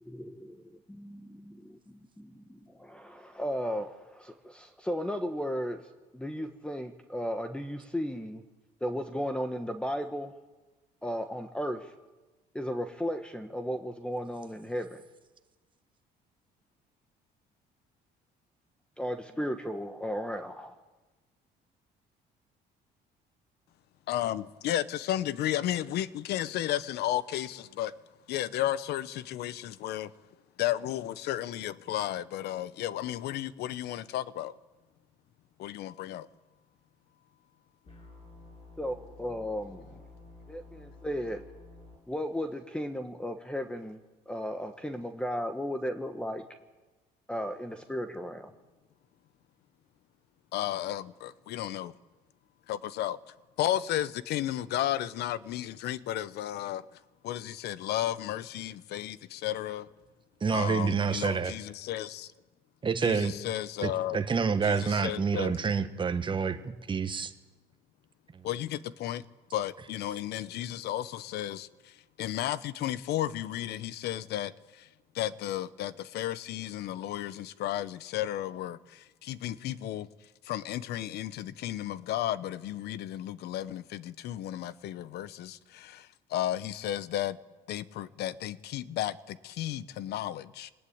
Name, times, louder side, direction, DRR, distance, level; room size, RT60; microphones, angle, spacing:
voice 1, 0.1-5.8 6.1-8.4 8.8-10.3 11.0-11.9 12.5-15.0 19.0-20.8 38.8-40.0 40.5-41.4 42.1-44.0 44.3-46.4 47.3-48.5, equal, 5° left, 1.4 m, -35 dB
voice 2, 24.1-27.9 28.3-30.1 30.6-34.5 35.6-36.3 50.5-51.9 52.7-53.2 53.6-56.8 57.2-59.9 60.5-62.3 63.0-64.2 64.6-65.6 68.4-69.2 69.5-71.9 72.2-74.9 75.1-80.1 80.4-87.4 87.7-90.7, left 12 dB, 75° left, 1.0 m, -33 dB
sound 1, 37.8-42.0, left 2 dB, 35° left, 7.1 m, -51 dB
voice 3, 60.4-61.5 62.8-63.3 63.8-67.3, right 5 dB, 30° right, 1.5 m, -28 dB
23.0 x 19.5 x 8.7 m
cardioid pair, 110°, 17 cm